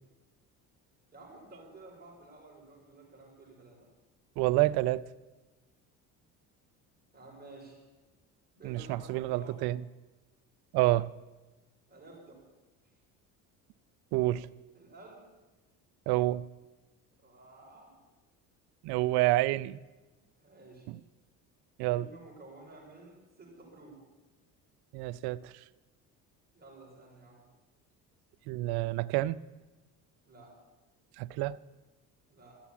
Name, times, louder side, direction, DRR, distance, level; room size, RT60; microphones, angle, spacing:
voice 1, 1.1-3.9 7.1-7.8 8.6-9.5 11.9-12.4 14.7-15.2 17.2-17.9 20.4-20.9 21.9-24.0 26.5-27.4 30.3-30.5 32.3-32.6, right 2 dB, 25° right, 5.3 m, -52 dB
voice 2, 4.4-5.1 8.6-9.8 10.7-11.1 14.1-14.5 16.1-16.4 18.8-19.8 20.9-21.0 21.8-22.1 24.9-25.5 28.5-29.4 31.2-31.6, right 17 dB, 75° right, 0.6 m, -28 dB
13.0 x 6.9 x 8.4 m
supercardioid pair, 80°, 39 cm